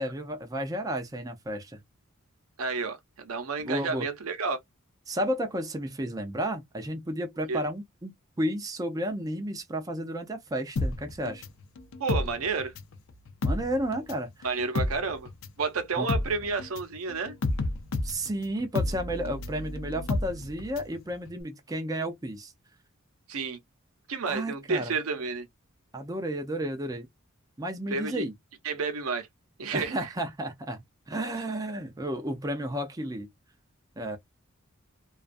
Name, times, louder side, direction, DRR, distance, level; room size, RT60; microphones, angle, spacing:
voice 1, 0.0-1.8 3.6-4.1 5.1-8.1 8.4-11.4 13.4-14.5 16.0-16.1 18.0-22.5 24.3-24.9 25.9-27.1 27.6-28.3 29.7-33.3 34.0-34.2, equal, 15° right, 0.4 m, -32 dB
voice 2, 2.6-4.6 7.5-7.6 12.0-12.7 14.4-15.3 15.6-17.3 23.3-23.6 24.1-25.5 27.9-28.3 28.6-29.3 29.6-30.0, right 4 dB, 85° right, 0.6 m, -30 dB
sound 1, 10.8-13.0 13.3-21.0 21.3-21.4, left 2 dB, 65° left, 0.5 m, -31 dB
2.3 x 2.3 x 2.4 m
head